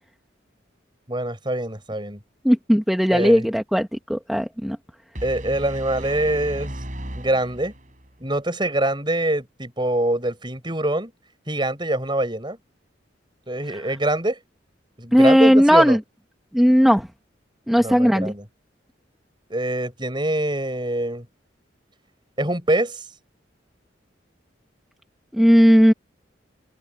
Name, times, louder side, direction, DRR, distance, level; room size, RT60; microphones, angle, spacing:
voice 1, 1.1-2.2 3.1-3.5 5.2-6.8 7.1-7.7 8.2-11.1 11.5-12.6 13.5-14.4 15.0-16.0 17.7-18.4 19.5-21.3 22.4-23.0, right 1 dB, 25° right, 7.2 m, -24 dB
voice 2, 2.4-4.8 15.1-16.0 16.5-17.1 17.7-18.3 25.3-25.9, equal, ahead, 1.2 m, -16 dB
sound 1, 5.1-8.1, right 1 dB, 40° right, 6.7 m, -35 dB
head